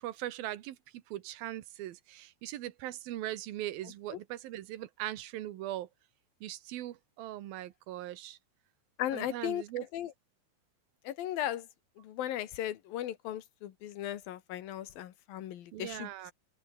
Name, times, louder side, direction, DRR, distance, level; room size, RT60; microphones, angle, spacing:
voice 1, 0.0-5.9 6.4-8.4 9.1-9.9 15.7-16.3, right 14 dB, 90° right, 3.1 m, -40 dB
voice 2, 9.0-9.6 9.9-10.1 11.0-11.7 12.0-16.1, left 12 dB, 80° left, 3.3 m, -36 dB
open air
omnidirectional pair, 4.1 m